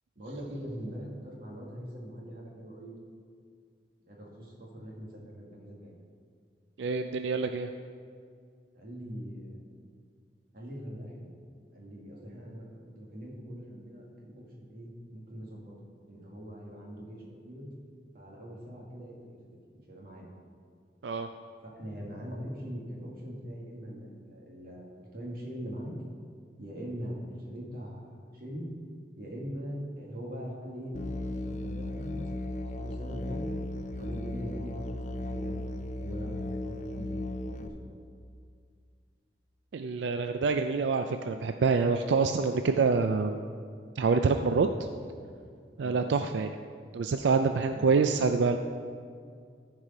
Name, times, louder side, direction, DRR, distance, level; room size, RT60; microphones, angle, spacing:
voice 1, 0.2-3.0 4.0-5.9 8.7-9.7 10.5-11.3 11.7-15.7 16.1-17.7 18.1-19.4 19.9-20.3 21.6-25.9 26.6-28.7 29.2-32.3 32.5-33.5 34.0-35.7 36.0-37.9 45.8-46.0 47.7-48.3, equal, 55° right, -3 dB, 2.0 m, -42 dB
voice 2, 6.8-7.7 21.0-21.3 39.7-43.4 44.0-44.7 45.8-46.5 46.9-48.6, right 4 dB, 90° right, 7 dB, 0.4 m, -26 dB
Musical instrument, 30.9-37.7, left 1 dB, 45° left, 0.5 m, -36 dB
13.5 x 4.9 x 5.5 m, 2.2 s
head